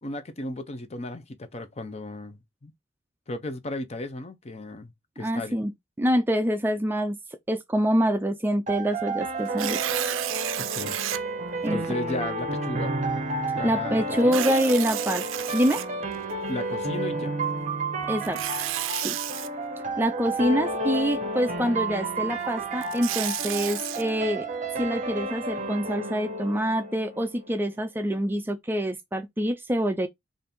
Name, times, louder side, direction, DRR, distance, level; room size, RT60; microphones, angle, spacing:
voice 1, 0.0-2.7 3.3-5.6 10.6-11.0 11.7-13.0 13.6-14.6 16.5-17.3, left 1 dB, 35° left, 0.6 m, -35 dB
voice 2, 5.2-7.2 7.5-9.8 11.6-11.8 13.6-15.8 18.1-18.4 19.0-19.2 20.0-24.5 24.8-30.1, equal, 10° right, 0.3 m, -26 dB
sound 1, 8.7-27.6, right 2 dB, 40° right, 0.7 m, -31 dB
Tearing, 9.5-11.2 11.8-11.9 14.2-16.3 18.2-19.5 22.6-24.0, right 14 dB, 80° right, 0.4 m, -31 dB
4.1 x 2.6 x 3.5 m
head